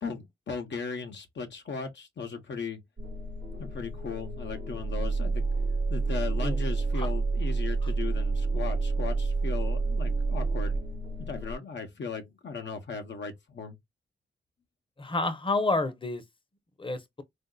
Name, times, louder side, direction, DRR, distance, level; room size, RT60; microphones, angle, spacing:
voice 1, 0.0-2.8 3.6-5.5 5.9-10.8 11.2-13.8, left 5 dB, 70° left, 0.8 m, -37 dB
sound 1, 3.0-11.5, right 3 dB, 70° right, 0.9 m, -29 dB
voice 2, 15.0-16.2 16.8-17.2, left 2 dB, 25° left, 0.8 m, -29 dB
3.7 x 2.6 x 2.3 m
cardioid pair, 50°, 19 cm